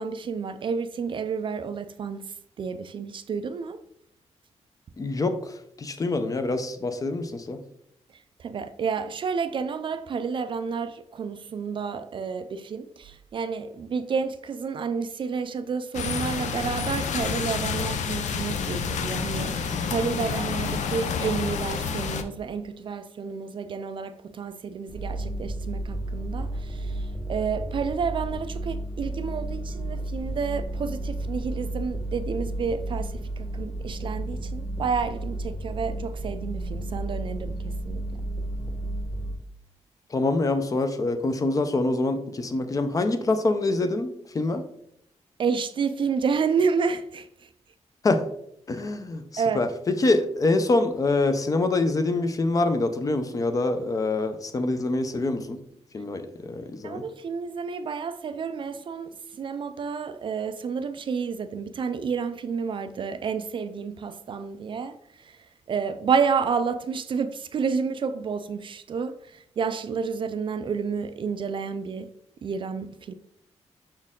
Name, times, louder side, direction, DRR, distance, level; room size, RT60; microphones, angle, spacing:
voice 1, 0.0-2.2 2.6-3.8 8.4-38.0 45.4-47.5 49.4-49.6 56.8-72.1 72.4-73.1, right 5 dB, 45° right, 0.4 m, -30 dB
voice 2, 5.0-7.6 40.1-44.6 48.0-48.2 48.7-55.6 55.9-57.0, left 2 dB, 30° left, 0.5 m, -25 dB
sound 1, 15.9-22.2, left 6 dB, 90° left, 0.6 m, -29 dB
sound 2, 24.9-39.4, right 1 dB, ahead, 0.9 m, -32 dB
6.1 x 4.4 x 3.6 m
wide cardioid pair, 175°, 12 cm